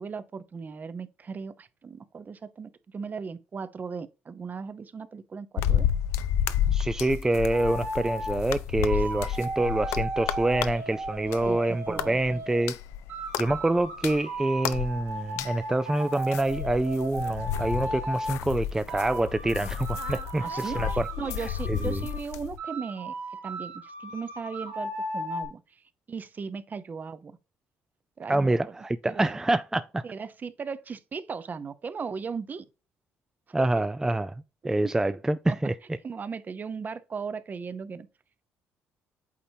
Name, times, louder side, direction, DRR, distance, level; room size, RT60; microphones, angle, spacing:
voice 1, 0.0-5.9 8.9-9.1 11.4-12.2 20.4-23.1 23.4-27.4 28.2-28.7 29.0-29.4 30.0-32.7 35.5-35.6 36.0-38.1, right 5 dB, 40° right, 0.7 m, -37 dB
sound 1, 5.6-11.6 11.9-15.6 16.1-22.6, left 10 dB, 75° left, 0.5 m, -31 dB
voice 2, 6.7-12.8 13.4-21.1 21.7-22.0 28.3-30.0 33.5-34.3 34.6-35.7, right 2 dB, 10° right, 0.4 m, -26 dB
sound 2, 7.5-8.4 8.9-12.6 13.1-18.4 18.9-22.2 22.6-25.5, right 2 dB, 75° right, 2.5 m, -36 dB
8.5 x 4.2 x 2.8 m
supercardioid pair, 65°, 5 cm